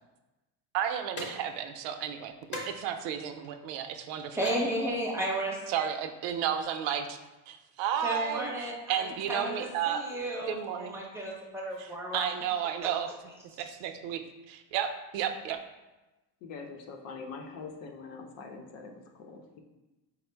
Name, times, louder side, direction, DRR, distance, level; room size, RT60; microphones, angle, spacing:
voice 1, 0.7-4.4 5.7-7.2 7.5-10.1 10.5-11.0 11.8-13.1 13.6-14.2 14.5-15.6, right 9 dB, 80° right, 7 dB, 0.5 m, -33 dB
sound 1, 1.2-1.3 2.5-2.6 3.4-3.5 4.2-4.6 6.3-6.6, left 2 dB, 25° left, 0.7 m, -39 dB
voice 2, 4.3-5.6 8.0-12.3, right 1 dB, 5° right, -3 dB, 0.5 m, -33 dB
voice 3, 16.4-19.6, left 4 dB, 85° left, 3 dB, 0.7 m, -44 dB
4.4 x 2.1 x 4.4 m, 1.1 s
cardioid pair, 160°, 43 cm